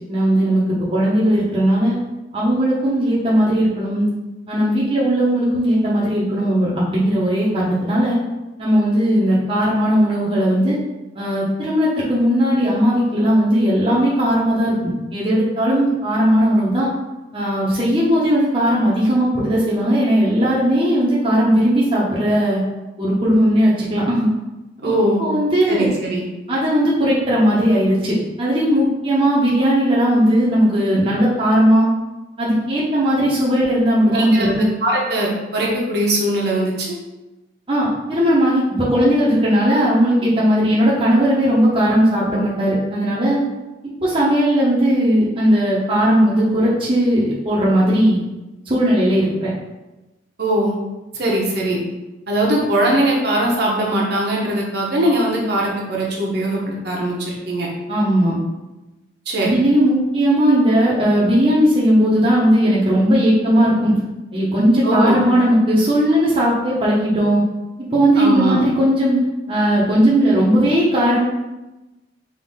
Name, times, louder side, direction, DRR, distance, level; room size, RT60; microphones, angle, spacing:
voice 1, 0.1-0.6 0.9-1.9 2.3-4.1 4.5-8.2 8.6-10.8 11.1-16.9 17.3-22.6 23.0-24.3 25.2-25.9 26.5-31.9 32.4-34.7 37.7-43.4 44.0-48.2 48.7-49.5 57.9-58.4 59.4-63.9 64.3-67.4 67.9-69.2 69.5-71.2, equal, 25° right, -7 dB, 0.8 m, -17 dB
voice 2, 24.8-25.2 25.7-26.2 34.2-34.5 34.8-36.9 50.4-50.7 51.1-51.8 52.3-57.7 59.3-59.5 64.8-65.3 68.2-68.6, right 1 dB, 55° right, -3 dB, 0.9 m, -20 dB
3.6 x 2.7 x 4.1 m, 1.1 s
head